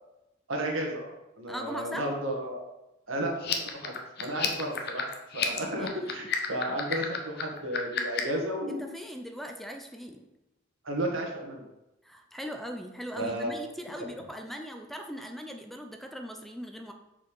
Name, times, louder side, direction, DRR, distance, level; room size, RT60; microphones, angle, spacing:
voice 1, 0.5-1.1 1.4-2.6 3.1-5.1 5.3-8.9 10.8-11.7 13.1-13.5, right 1 dB, 75° right, 1 dB, 1.9 m, -33 dB
voice 2, 1.5-2.0 5.5-6.3 8.7-10.2 12.0-16.9, equal, ahead, 4 dB, 0.6 m, -40 dB
sound 1, 3.4-8.4, left 8 dB, 55° left, 1.0 m, -32 dB
7.2 x 5.3 x 5.4 m, 0.94 s
head